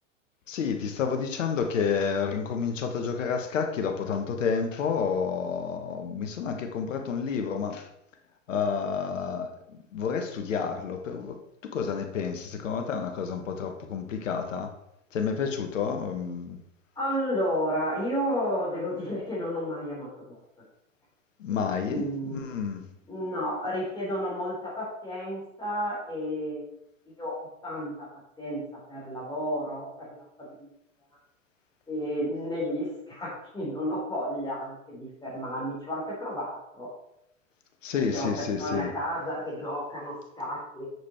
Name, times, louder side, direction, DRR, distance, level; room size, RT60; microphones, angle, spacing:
voice 1, 0.5-7.9 8.5-14.7 15.1-16.6 21.4-22.9 37.8-38.9, left 6 dB, 75° left, 6 dB, 1.6 m, -30 dB
voice 2, 17.0-20.4 21.5-22.4 23.1-26.7 27.1-27.3 27.6-27.9 28.4-28.6 28.9-30.1 30.6-30.7 31.9-36.9 38.1-40.9, equal, 10° left, -6 dB, 3.6 m, -32 dB
7.4 x 6.5 x 4.4 m, 0.82 s
hypercardioid pair, 105°, 38 cm